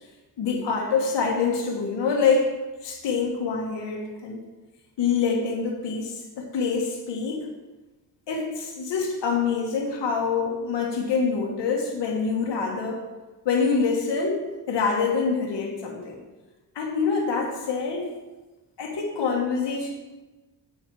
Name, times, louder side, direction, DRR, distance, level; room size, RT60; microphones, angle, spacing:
voice 1, 0.4-4.4 5.0-7.5 8.3-13.0 13.4-16.2 16.7-18.1 18.8-19.9, left 5 dB, 80° left, 0 dB, 1.7 m, -26 dB
8.9 x 6.4 x 4.9 m, 1.2 s
cardioid pair, 105°, 42 cm